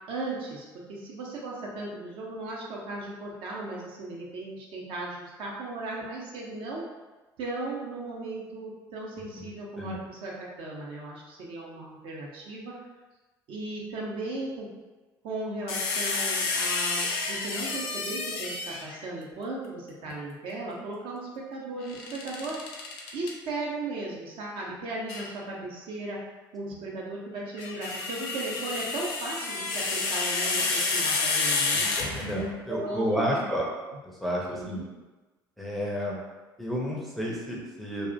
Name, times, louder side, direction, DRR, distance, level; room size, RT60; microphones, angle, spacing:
voice 1, 0.1-6.8 7.4-12.7 13.5-14.7 15.2-22.6 23.1-26.2 26.5-33.5 33.9-34.0 34.5-34.9, right 2 dB, 45° right, -3 dB, 0.5 m, -36 dB
voice 2, 9.4-10.0 31.7-33.7 34.2-34.8 35.6-36.2 36.6-38.1, equal, ahead, -4 dB, 0.5 m, -31 dB
sound 1, 15.7-19.0 21.9-23.3 25.1-25.3 27.4-32.5, left 3 dB, 50° left, 0.4 m, -29 dB
2.4 x 2.0 x 2.5 m, 1.2 s
figure-of-eight pair, 60°, 12 cm